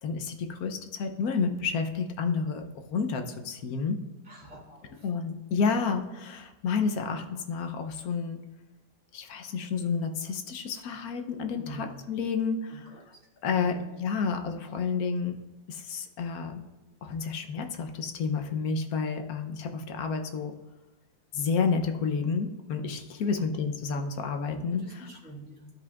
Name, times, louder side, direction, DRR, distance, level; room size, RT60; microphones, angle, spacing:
voice 1, 0.0-4.0 5.0-8.4 9.1-12.9 13.4-15.4 15.7-16.6 17.0-20.5 21.3-25.1, left 5 dB, 75° left, 5 dB, 1.2 m, -30 dB
voice 2, 4.3-5.0 11.5-11.9 13.5-13.8 19.2-19.3 23.3-23.5 24.8-25.7, right 1 dB, 5° right, -5 dB, 2.4 m, -45 dB
12.0 x 5.1 x 2.4 m, 1.1 s
omnidirectional pair, 1.7 m